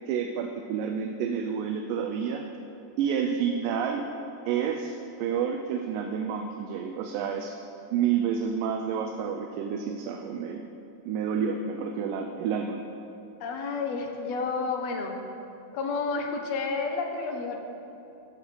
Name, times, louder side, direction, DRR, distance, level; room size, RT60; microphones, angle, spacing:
voice 1, 0.1-2.4 3.0-4.1 4.5-7.5 7.9-10.6 11.1-12.8, right 7 dB, 90° right, 3 dB, 2.3 m, -29 dB
voice 2, 13.4-15.2 15.7-17.6, left 4 dB, 70° left, 3 dB, 1.7 m, -30 dB
16.0 x 6.6 x 4.6 m, 2.8 s
omnidirectional pair, 3.8 m